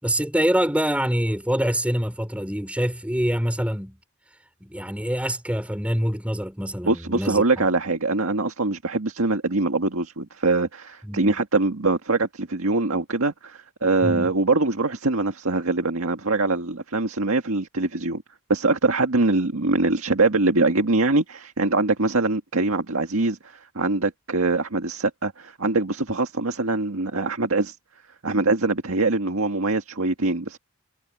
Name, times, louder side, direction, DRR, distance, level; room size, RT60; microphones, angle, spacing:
voice 1, 0.0-4.0 4.6-7.7 11.0-11.4 14.0-14.3, equal, 5° right, 4.8 m, -25 dB
voice 2, 6.8-18.2 18.5-27.8 28.2-30.6, right 3 dB, 80° right, 1.8 m, -23 dB
head